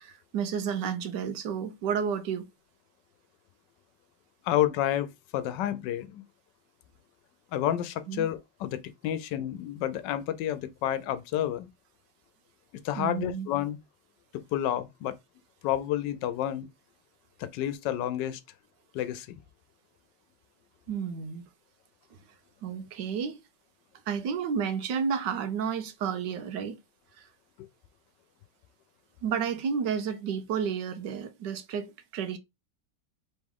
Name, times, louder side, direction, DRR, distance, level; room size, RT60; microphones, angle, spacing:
voice 1, 0.0-2.5 8.1-8.3 13.0-13.5 20.9-21.5 22.6-23.4 24.1-26.8 29.2-32.4, right 7 dB, 80° right, 1.3 m, -31 dB
voice 2, 4.4-5.1 5.3-6.2 7.5-11.7 12.8-13.8 14.3-15.2 15.6-16.7 17.4-18.4 18.9-19.4, left 12 dB, 85° left, 1.2 m, -30 dB
3.5 x 3.1 x 3.6 m
omnidirectional pair, 1.9 m